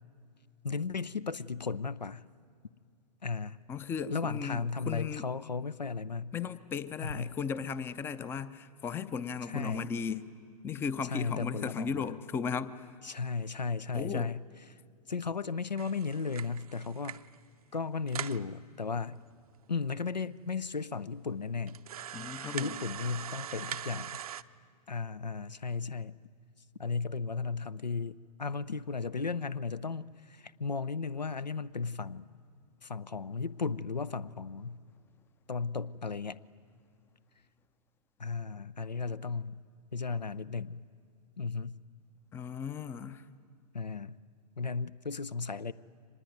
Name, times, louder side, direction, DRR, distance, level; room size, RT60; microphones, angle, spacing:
voice 1, 0.6-2.2 3.2-3.6 4.1-6.3 7.0-7.4 9.5-9.9 11.1-12.1 13.0-14.4 15.1-17.2 17.7-19.2 19.7-21.8 22.5-24.1 24.9-26.2 26.8-32.3 32.8-34.8 35.5-36.4 38.2-39.6 39.9-40.8 41.4-41.8 43.7-44.2 44.6-45.7, left 4 dB, 85° left, 18 dB, 0.6 m, -35 dB
voice 2, 3.7-5.3 6.3-10.2 10.6-12.9 13.9-14.3 22.1-22.8 42.3-43.3, left 6 dB, 10° left, 15 dB, 0.5 m, -36 dB
sound 1, 15.8-17.4 17.7-17.8 18.1-18.4 19.1-19.2 19.5-19.6 20.2-20.3 20.8-20.9 21.7-24.4, right 9 dB, 60° right, 0.6 m, -41 dB
24.5 x 20.0 x 9.4 m, 2.4 s
figure-of-eight pair, 110°, 21 cm